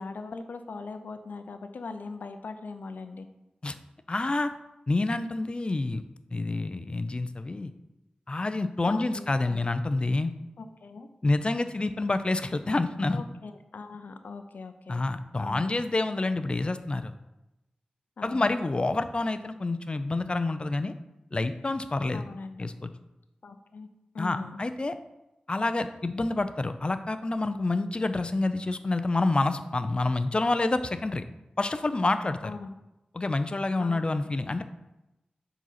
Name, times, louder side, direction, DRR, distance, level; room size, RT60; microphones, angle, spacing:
voice 1, 0.0-3.3 8.9-9.6 10.6-11.1 13.1-15.0 15.4-15.7 18.2-18.5 22.1-22.6 23.4-23.9 24.1-24.6 32.4-32.7 33.8-34.1, left 4 dB, 85° left, 8 dB, 0.6 m, -40 dB
voice 2, 4.1-4.5 4.9-6.0 6.3-7.7 8.3-10.3 11.2-13.2 14.9-17.1 18.2-20.9 21.3-22.3 22.6-22.9 24.2-24.9 25.5-31.2 31.6-32.5 33.1-34.6, left 2 dB, 35° left, 10 dB, 0.5 m, -28 dB
7.5 x 4.0 x 5.7 m, 0.97 s
wide cardioid pair, 85°, 3 cm